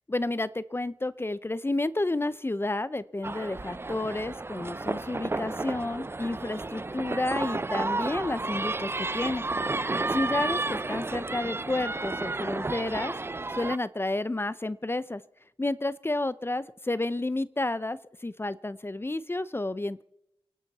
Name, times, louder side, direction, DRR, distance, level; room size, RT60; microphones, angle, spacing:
voice 1, 0.1-9.4 10.1-13.1 13.5-15.2 15.6-20.0, left 2 dB, 25° left, 16 dB, 0.7 m, -31 dB
sound 1, 3.2-13.8, right 2 dB, 25° right, 0.5 m, -32 dB
29.0 x 11.0 x 4.2 m, 0.83 s
cardioid pair, 60°, 10 cm